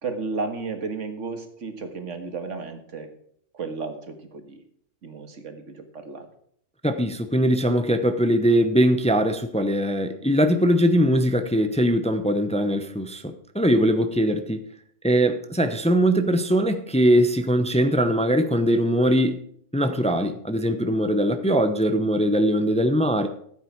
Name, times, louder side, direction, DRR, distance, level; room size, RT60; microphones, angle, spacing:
voice 1, 0.0-3.1 3.5-4.6 5.0-6.3, right 4 dB, 90° right, 1.9 m, -33 dB
voice 2, 6.8-14.6 15.0-19.4 19.7-23.3, equal, 5° left, 0.7 m, -21 dB
14.0 x 8.2 x 4.6 m
omnidirectional pair, 1.2 m